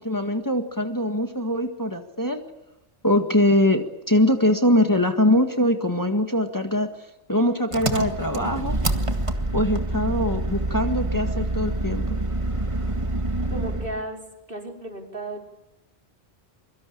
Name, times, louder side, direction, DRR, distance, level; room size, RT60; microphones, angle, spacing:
voice 1, 0.0-2.4 3.0-6.9 7.3-8.8 9.5-12.0, left 1 dB, 15° left, 5 dB, 1.8 m, -22 dB
Engine, 7.7-14.0, right 2 dB, 30° right, 1.9 m, -26 dB
voice 2, 13.5-14.2 14.5-15.5, right 1 dB, 55° right, 2 dB, 4.9 m, -34 dB
24.0 x 24.0 x 8.7 m, 0.92 s
omnidirectional pair, 1.1 m